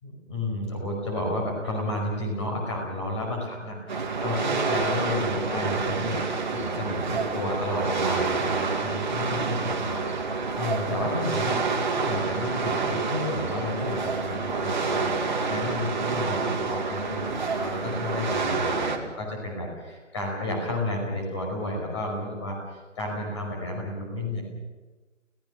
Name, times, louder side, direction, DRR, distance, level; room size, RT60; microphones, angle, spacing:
voice 1, 0.0-6.2 6.5-15.1 15.5-24.4, left 1 dB, 25° left, 0 dB, 5.3 m, -32 dB
sound 1, 3.9-19.0, right 4 dB, 35° right, 2.2 m, -28 dB
29.5 x 16.5 x 6.6 m, 1.3 s
figure-of-eight pair, 160°, 38 cm